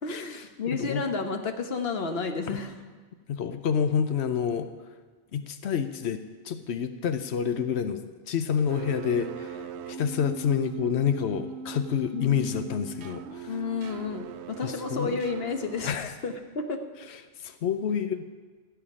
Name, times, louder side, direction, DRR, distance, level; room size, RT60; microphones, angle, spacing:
voice 1, 0.0-2.7 12.1-12.5 13.5-16.0 16.2-16.8, left 4 dB, 65° left, 6 dB, 1.4 m, -31 dB
voice 2, 0.7-1.0 2.5-2.6 3.3-4.7 5.3-6.2 6.4-13.5 14.6-15.2 15.8-16.1 17.1-18.2, left 7 dB, 85° left, 9 dB, 1.0 m, -28 dB
sound 1, 8.7-15.9, right 5 dB, 90° right, 0.9 m, -40 dB
15.5 x 5.7 x 9.9 m, 1.4 s
omnidirectional pair, 1.1 m